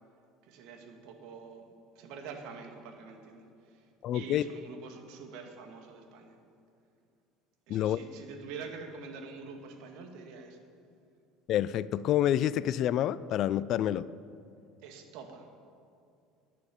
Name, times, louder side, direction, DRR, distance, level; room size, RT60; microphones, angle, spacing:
voice 1, 0.4-3.9 4.1-6.4 7.7-10.6 14.8-15.5, right 5 dB, 65° right, 4 dB, 2.0 m, -46 dB
voice 2, 4.0-4.4 7.7-8.0 11.5-14.1, left 11 dB, 55° left, 18 dB, 0.4 m, -28 dB
11.0 x 9.3 x 9.8 m, 2.4 s
hypercardioid pair, 70°, 0 cm